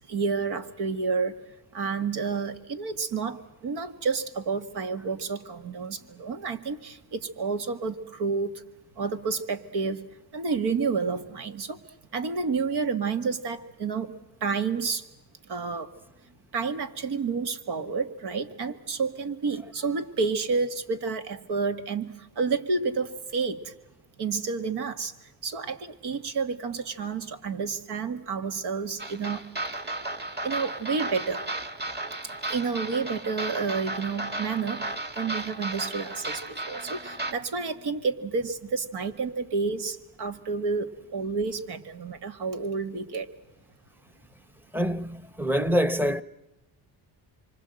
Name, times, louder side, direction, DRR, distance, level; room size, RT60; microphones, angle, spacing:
voice 1, 0.1-1.4 1.7-8.6 9.0-10.1 10.3-11.8 12.1-14.2 14.4-15.1 15.4-15.9 16.5-23.7 24.2-29.5 30.4-31.5 32.4-43.3, right 4 dB, 75° right, 2.0 m, -30 dB
sound 1, 29.0-37.3, right 2 dB, 25° right, 1.7 m, -34 dB
voice 2, 44.7-46.2, equal, 5° right, 0.9 m, -26 dB
26.5 x 25.0 x 7.8 m
cardioid pair, 110°, 40 cm